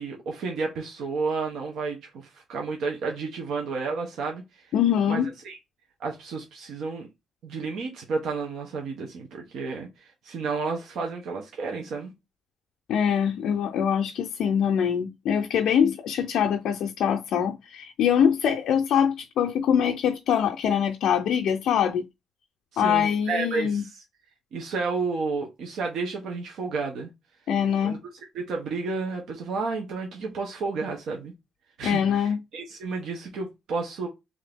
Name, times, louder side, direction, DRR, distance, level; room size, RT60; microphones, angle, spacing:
voice 1, 0.0-4.7 5.1-5.6 6.0-7.1 7.4-12.1 22.7-24.0 24.5-27.1 27.8-28.0 28.3-31.3 31.8-34.1, right 4 dB, 75° right, 0.9 m, -31 dB
voice 2, 4.7-5.3 12.9-22.0 22.8-23.8 27.5-28.0 31.8-32.4, left 8 dB, 75° left, 0.4 m, -23 dB
3.5 x 2.7 x 3.5 m
cardioid pair, 90°, 0 cm